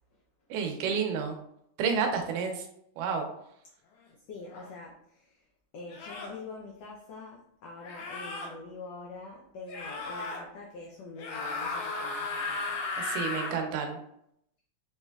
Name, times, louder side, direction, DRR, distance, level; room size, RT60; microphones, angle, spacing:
voice 1, 0.5-1.4 1.8-2.7 3.0-3.3 13.0-14.0, right 6 dB, 85° right, 4 dB, 2.2 m, -30 dB
voice 2, 4.3-5.4 5.7-12.8, left 3 dB, 90° left, -3 dB, 1.4 m, -45 dB
sound 1, 4.5-4.7 5.9-6.4 7.8-8.5 9.7-10.4 11.2-13.6, left 3 dB, 75° left, 2.0 m, -35 dB
5.5 x 3.1 x 2.3 m, 0.74 s
omnidirectional pair, 3.7 m